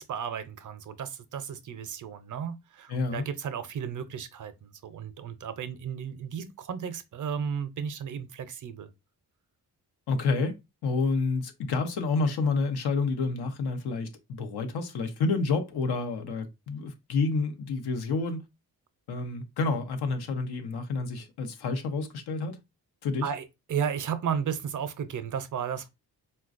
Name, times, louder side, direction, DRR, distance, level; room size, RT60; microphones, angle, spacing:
voice 1, 0.0-8.9 23.2-25.9, right 7 dB, 55° right, 0.5 m, -34 dB
voice 2, 2.9-3.2 10.1-10.6 10.8-18.4 19.1-22.6 23.0-23.3, left 4 dB, 85° left, 0.7 m, -29 dB
4.0 x 2.2 x 2.4 m
cardioid pair, 100°, 38 cm